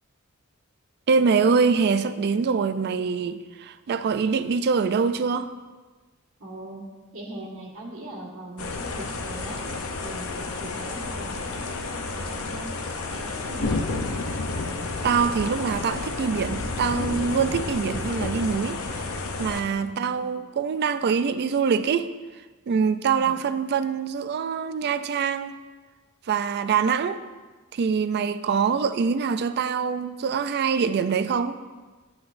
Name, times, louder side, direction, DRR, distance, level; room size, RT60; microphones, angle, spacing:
voice 1, 1.1-5.5 15.0-19.0 19.4-22.1 22.7-25.6 26.3-27.2 27.7-31.6, right 5 dB, 50° right, 0.3 m, -24 dB
voice 2, 6.4-6.8 7.1-9.6 10.0-12.7 13.1-14.0 19.9-20.4 23.1-23.4 28.4-28.8, right 1 dB, 75° right, 1.6 m, -40 dB
sound 1, 8.6-19.6, left 3 dB, 75° left, 0.7 m, -31 dB
8.6 x 7.8 x 2.6 m
head